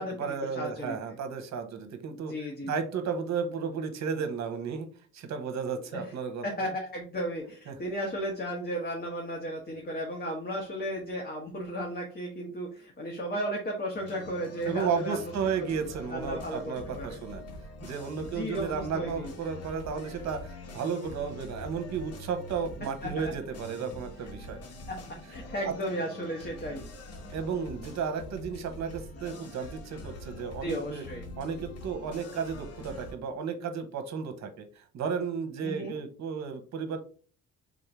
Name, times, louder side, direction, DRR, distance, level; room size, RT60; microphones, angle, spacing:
voice 1, 0.0-2.3 2.6-4.9 5.1-6.7 7.7-7.8 14.7-17.4 17.8-24.6 25.6-25.7 27.3-31.0 31.4-37.0, right 6 dB, 65° right, 8 dB, 0.9 m, -33 dB
voice 2, 0.5-1.0 2.1-2.7 5.9-6.1 6.4-15.3 15.6-15.7 16.1-17.2 18.2-19.3 23.0-23.3 24.9-25.0 25.3-26.9 30.6-31.3 35.6-35.9, equal, 30° left, 0 dB, 1.1 m, -35 dB
sound 1, 13.9-33.2, left 1 dB, 55° left, 1.1 m, -44 dB
3.7 x 2.7 x 4.6 m, 0.42 s
cardioid pair, 90°, 30 cm